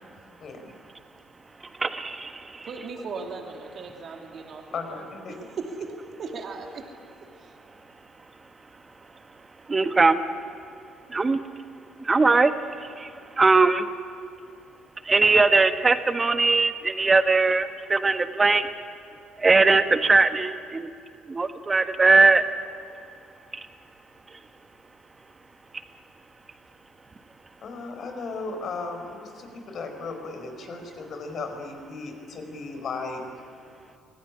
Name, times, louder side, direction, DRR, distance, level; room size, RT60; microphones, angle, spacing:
voice 1, 0.4-0.7 4.7-5.4 27.6-33.2, left 4 dB, 55° left, 5 dB, 4.7 m, -36 dB
voice 2, 1.8-2.7 9.7-10.2 11.1-11.4 12.0-13.9 15.0-18.7 19.4-20.9 21.3-22.4, right 3 dB, 25° right, 9 dB, 1.5 m, -20 dB
voice 3, 2.6-4.6 4.9-5.1 5.4-6.9 7.4-7.6, right 4 dB, 50° right, 2 dB, 3.0 m, -37 dB
24.5 x 17.5 x 9.9 m, 2.5 s
hypercardioid pair, 55°, 0 cm